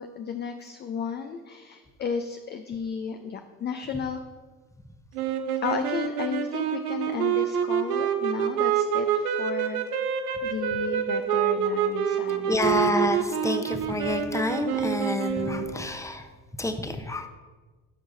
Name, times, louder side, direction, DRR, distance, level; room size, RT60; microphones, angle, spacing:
voice 1, 0.0-4.2 5.6-9.8 10.4-12.5, left 6 dB, 25° left, 7 dB, 0.4 m, -33 dB
sound 1, 5.1-15.9, right 8 dB, 75° right, 0.8 m, -27 dB
voice 2, 12.5-16.3 16.6-17.3, left 1 dB, 5° left, 7 dB, 0.8 m, -28 dB
15.0 x 6.1 x 2.7 m, 1.3 s
figure-of-eight pair, 60°, 45 cm